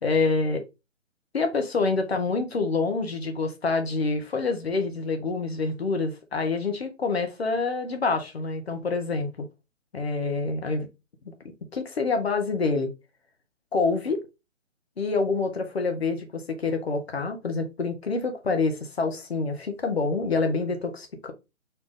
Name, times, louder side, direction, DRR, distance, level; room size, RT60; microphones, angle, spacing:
voice 1, 0.0-0.6 1.3-9.4 9.9-10.9 11.2-11.3 11.7-12.9 13.7-14.2 15.0-21.3, left 4 dB, 55° left, 1.3 m, -27 dB
4.2 x 2.9 x 3.7 m
figure-of-eight pair, 140°, 38 cm